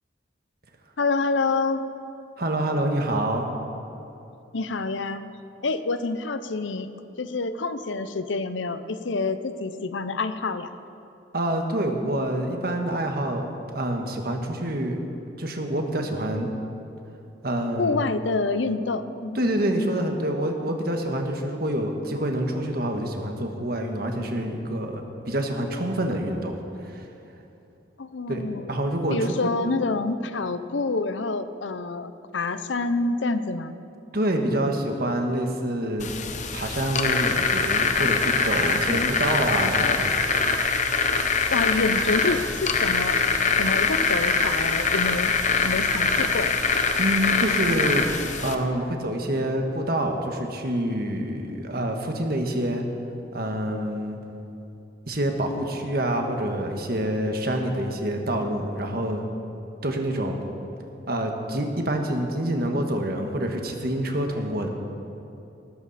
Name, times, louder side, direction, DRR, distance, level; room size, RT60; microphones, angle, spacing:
voice 1, 1.0-1.8 4.5-5.2 5.6-6.9 7.2-10.7 17.8-19.4 28.0-28.6 29.1-33.7 38.9-40.0 41.5-43.2 43.6-45.3 45.6-46.6, left 3 dB, 80° left, 11 dB, 0.7 m, -27 dB
voice 2, 2.4-3.5 11.3-15.0 15.4-16.5 17.4-18.0 19.3-26.6 26.8-27.1 28.3-28.4 28.7-29.4 34.1-36.1 36.5-40.1 47.0-48.0 48.4-52.8 53.3-54.2 55.1-59.2 59.8-60.4 61.1-64.7, right 1 dB, 50° right, 3 dB, 1.5 m, -27 dB
sound 1, 36.0-48.6, left 5 dB, 40° left, 0.9 m, -23 dB
19.5 x 13.5 x 4.2 m, 2.9 s
head